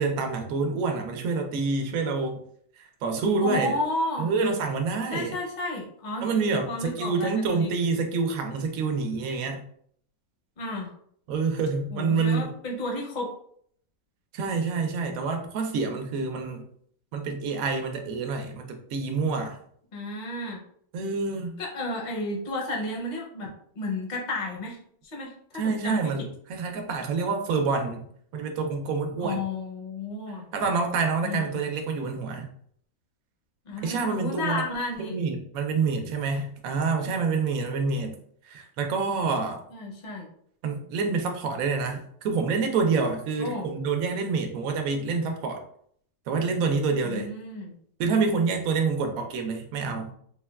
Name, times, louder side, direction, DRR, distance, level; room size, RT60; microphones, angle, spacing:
voice 1, 0.0-2.4 2.8-3.8 4.2-5.4 6.2-9.6 11.3-12.5 14.3-16.6 17.1-19.6 20.9-21.5 25.5-26.2 26.5-28.0 28.3-29.4 30.5-32.5 33.8-34.6 35.0-38.1 38.4-39.6 40.6-45.6 46.3-47.3 48.0-50.1, right 4 dB, 75° right, 4 dB, 1.0 m, -27 dB
voice 2, 3.4-4.3 5.1-6.3 6.7-7.7 10.6-10.9 11.9-13.3 19.9-20.6 21.6-24.8 25.1-25.3 25.6-26.3 29.2-30.4 31.2-31.6 33.7-35.2 39.7-40.3 43.4-43.7 47.0-47.7 49.1-49.2, left 2 dB, 45° left, 0 dB, 0.6 m, -32 dB
4.1 x 2.2 x 2.2 m, 0.63 s
omnidirectional pair, 1.5 m